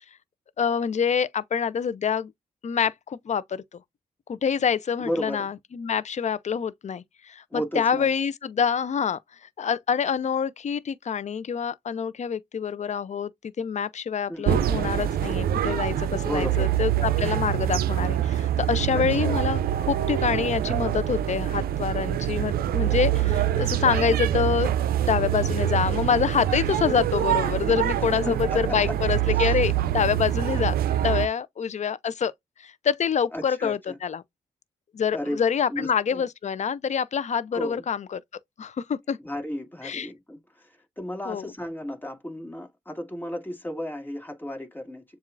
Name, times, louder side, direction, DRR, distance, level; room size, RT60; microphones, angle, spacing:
voice 1, 0.6-2.3 2.6-3.6 4.3-13.3 13.6-24.7 25.0-32.3 32.6-34.2 34.9-38.2 38.6-39.2 39.8-40.1 41.3-41.5, left 7 dB, 50° left, 0.5 m, -26 dB
voice 2, 5.0-5.5 7.5-8.1 14.3-14.6 16.3-16.7 18.9-19.4 28.2-28.9 29.3-29.6 33.3-34.0 35.1-35.4 35.7-36.2 37.5-37.8 39.2-45.0, equal, 15° left, 1.9 m, -34 dB
sound 1, 14.5-31.3, right 11 dB, 85° right, 0.4 m, -25 dB
7.2 x 2.4 x 2.5 m
cardioid pair, 55°, 15 cm